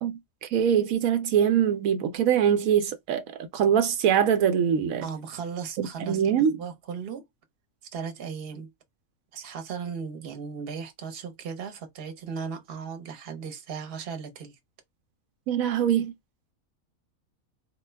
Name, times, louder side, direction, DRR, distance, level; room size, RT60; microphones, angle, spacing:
voice 1, 0.0-5.0 5.8-6.6 15.5-16.1, right 8 dB, 80° right, 1.0 m, -23 dB
voice 2, 5.0-7.2 7.9-8.7 9.3-14.6, right 6 dB, 50° right, 1.0 m, -37 dB
4.3 x 2.2 x 3.2 m
omnidirectional pair, 1.4 m